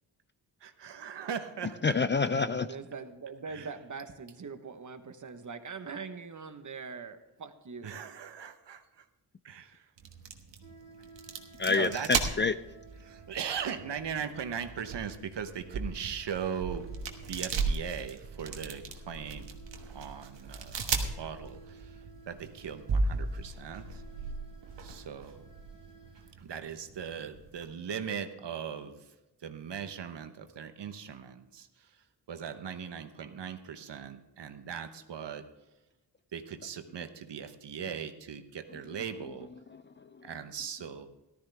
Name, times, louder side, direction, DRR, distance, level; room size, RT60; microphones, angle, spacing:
voice 1, 0.6-1.9 3.5-3.7 7.8-9.0 9.4-9.9 11.7-12.1 13.0-16.8 17.3-19.5 19.9-21.9 22.3-24.0 24.8-25.5 26.4-29.0 29.4-31.7 32.3-35.4 36.3-39.5 40.2-41.1, right 7 dB, 75° right, 9 dB, 1.1 m, -39 dB
voice 2, 1.8-2.7 11.6-12.5 39.7-40.3, left 4 dB, 30° left, 13 dB, 0.4 m, -28 dB
voice 3, 2.4-8.0, right 5 dB, 45° right, 9 dB, 1.1 m, -42 dB
sound 1, 10.0-27.7, right 4 dB, 90° right, 1.3 m, -37 dB
sound 2, 10.6-26.3, right 4 dB, 45° left, 4.0 m, -56 dB
14.0 x 12.5 x 3.4 m, 1.0 s
cardioid pair, 75°, 43 cm